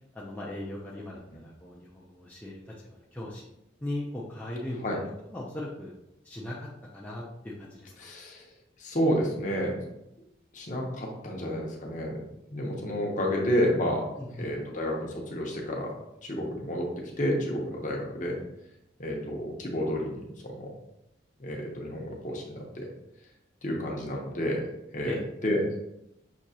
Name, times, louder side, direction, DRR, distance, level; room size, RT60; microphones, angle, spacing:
voice 1, 0.1-3.5 3.8-4.8 5.3-5.9 6.2-8.1 14.2-14.5 25.1-25.2, left 1 dB, 10° left, -5 dB, 0.5 m, -38 dB
voice 2, 8.0-8.4 8.8-9.8 10.5-12.2 12.5-14.0 14.4-15.9 16.2-16.9 17.2-18.4 19.0-20.7 21.4-22.9 23.6-24.6 24.9-25.2 25.4-25.6, equal, 40° left, -1 dB, 0.9 m, -30 dB
6.0 x 2.8 x 2.8 m, 0.84 s
head